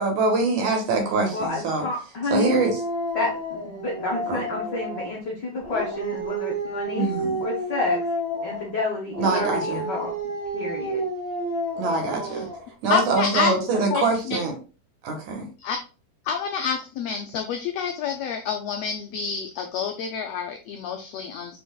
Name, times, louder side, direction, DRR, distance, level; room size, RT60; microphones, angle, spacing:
voice 1, 0.0-1.9 2.3-2.8 4.3-4.4 7.0-7.4 9.2-9.9 11.8-12.5 12.8-14.5 15.0-15.5, right 3 dB, 75° right, 3 dB, 2.4 m, -24 dB
voice 2, 1.3-2.6 3.1-7.1 7.4-8.0 8.4-10.1 10.5-11.0, left 3 dB, 70° left, -3 dB, 1.0 m, -29 dB
Dog, 2.4-5.2 5.6-8.7 9.1-12.7, right 1 dB, 25° right, 1.3 m, -30 dB
voice 3, 12.9-13.5 13.9-14.4 15.6-15.8 16.2-21.6, left 6 dB, 85° left, 5 dB, 1.4 m, -28 dB
5.7 x 3.9 x 2.2 m, 0.34 s
omnidirectional pair, 3.5 m